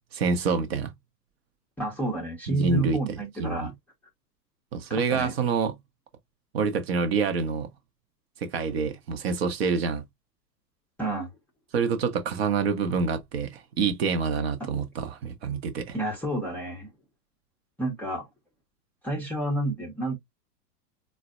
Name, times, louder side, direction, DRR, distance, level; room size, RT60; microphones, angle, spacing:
voice 1, 0.1-0.9 2.5-3.7 4.7-5.8 6.5-7.7 8.4-10.0 11.7-16.0, right 5 dB, 40° right, 0.6 m, -27 dB
voice 2, 1.8-3.7 4.9-5.3 11.0-11.3 15.9-16.9 17.8-18.2 19.0-20.2, right 2 dB, 5° left, 0.5 m, -30 dB
4.0 x 2.0 x 2.4 m
figure-of-eight pair, 100°, 49 cm